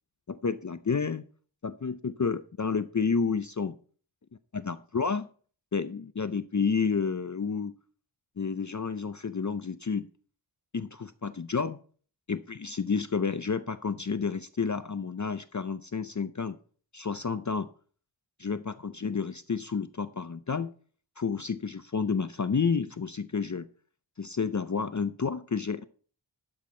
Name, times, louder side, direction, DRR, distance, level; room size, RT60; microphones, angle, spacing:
voice 1, 0.3-1.2 1.6-3.8 4.5-5.3 5.7-7.7 8.4-10.1 10.7-11.8 12.3-16.6 16.9-17.7 18.4-20.7 21.2-23.7 24.2-25.8, left 5 dB, 40° left, 12 dB, 0.6 m, -30 dB
12.0 x 8.1 x 4.4 m, 0.43 s
wide cardioid pair, 50°, 46 cm